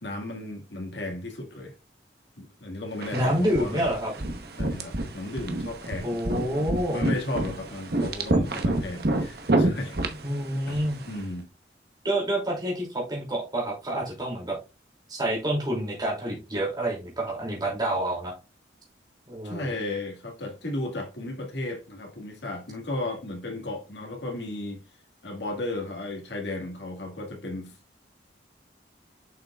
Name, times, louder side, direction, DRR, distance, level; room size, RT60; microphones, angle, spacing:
voice 1, 0.0-1.7 2.4-3.9 4.6-6.2 6.6-10.0 10.7-11.5 19.4-24.8 25.2-27.8, left 2 dB, 80° left, 2.0 m, -34 dB
sound 1, 3.0-11.2, right 2 dB, 60° right, 1.1 m, -29 dB
voice 2, 3.1-4.1 6.0-7.0 10.2-11.0 12.0-14.6 15.1-18.3 19.3-19.8, right 1 dB, 25° right, 2.7 m, -28 dB
7.3 x 5.9 x 2.4 m
head